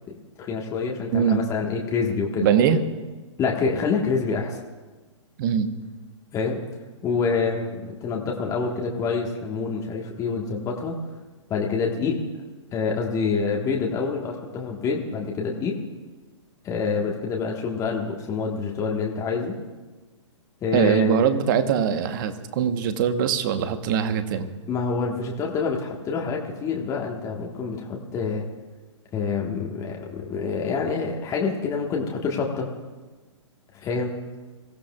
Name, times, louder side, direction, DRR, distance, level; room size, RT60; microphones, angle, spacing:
voice 1, 0.1-2.5 3.4-4.6 6.3-6.6 7.0-10.9 11.5-12.1 12.7-15.7 16.6-19.5 20.6-21.3 24.7-28.4 29.1-32.7 33.8-34.1, left 5 dB, 20° left, -1 dB, 1.5 m, -27 dB
voice 2, 2.4-2.8 5.4-5.7 20.7-24.5, right 8 dB, 40° right, 9 dB, 1.2 m, -22 dB
23.5 x 15.5 x 2.4 m, 1.3 s
figure-of-eight pair, 120°, 16 cm